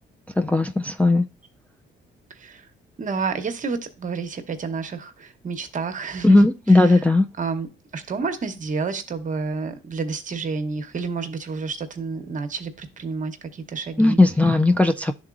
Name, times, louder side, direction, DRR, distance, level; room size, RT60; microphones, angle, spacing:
voice 1, 0.4-1.3 6.2-7.3 14.0-15.1, left 2 dB, 5° left, 0.3 m, -17 dB
voice 2, 2.3-2.7 3.0-6.4 6.7-7.0 7.4-7.7 7.9-14.2, right 4 dB, 40° right, 0.9 m, -30 dB
11.0 x 3.8 x 2.5 m
cardioid pair, 90°, 20 cm